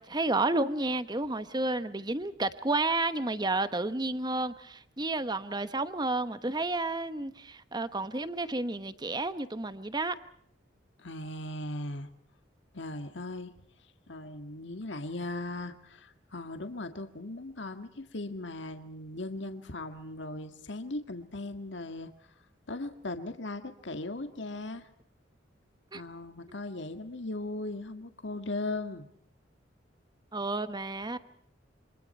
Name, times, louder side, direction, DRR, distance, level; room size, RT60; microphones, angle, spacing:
voice 1, 0.0-10.2 25.9-26.0 30.3-31.2, right 2 dB, 20° right, 1.1 m, -31 dB
voice 2, 11.0-12.1 12.7-13.5 14.1-22.1 22.7-24.9 25.9-29.1, left 2 dB, 65° left, 1.8 m, -38 dB
28.0 x 25.5 x 4.4 m
head